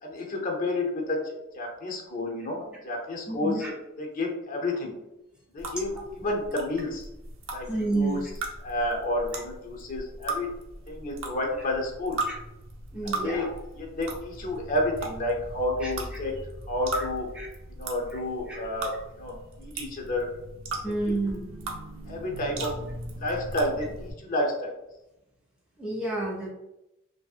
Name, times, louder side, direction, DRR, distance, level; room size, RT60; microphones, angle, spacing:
voice 1, 0.0-4.9 5.5-7.1 7.5-8.2 8.6-10.5 10.9-12.2 13.0-13.5 13.8-16.3 16.7-17.3 17.7-20.3 20.8-21.2 22.1-22.8 23.2-24.7, left 1 dB, 40° left, 0 dB, 0.6 m, -30 dB
voice 2, 3.3-3.7 7.7-8.2 12.3-12.4 12.9-13.5 15.8-15.9 16.9-17.1 17.3-17.5 18.1-18.2 18.5-18.7 20.8-21.4 25.8-26.5, right 2 dB, 5° right, -4 dB, 0.5 m, -30 dB
sound 1, 5.6-24.1, right 2 dB, 65° right, 0.6 m, -38 dB
2.9 x 2.7 x 2.4 m, 0.91 s
head